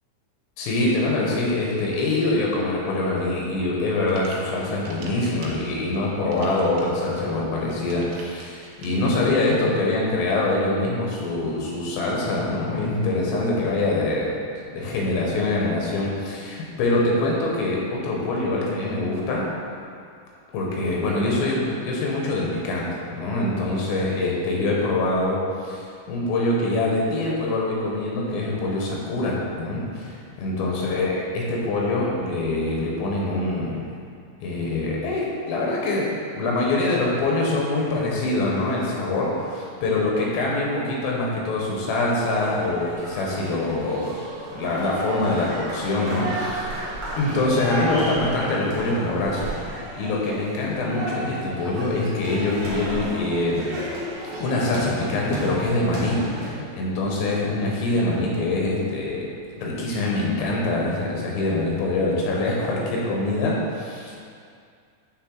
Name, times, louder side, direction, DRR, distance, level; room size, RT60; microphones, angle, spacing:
voice 1, 0.6-14.3 14.7-19.5 20.5-33.8 34.4-44.1 44.5-46.7 47.2-49.4 49.9-53.7 54.4-59.2 59.6-64.2, left 2 dB, 80° left, -3 dB, 3.1 m, -24 dB
sound 1, 3.8-8.9, right 3 dB, 85° right, 3.0 m, -44 dB
sound 2, 42.1-56.5, right 1 dB, 70° right, 1.7 m, -33 dB
8.8 x 3.7 x 3.8 m, 2.3 s
omnidirectional pair, 4.9 m